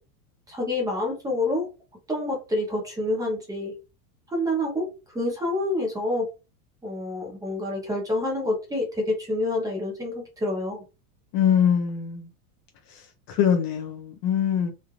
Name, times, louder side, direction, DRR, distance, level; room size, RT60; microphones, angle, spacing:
voice 1, 0.5-1.7 2.1-3.7 4.3-4.9 5.1-6.3 6.8-10.8, left 1 dB, 10° right, 0.6 m, -27 dB
voice 2, 11.3-12.3 12.9-14.7, left 8 dB, 40° left, 0.5 m, -23 dB
3.1 x 2.4 x 2.4 m
supercardioid pair, 155°, 47 cm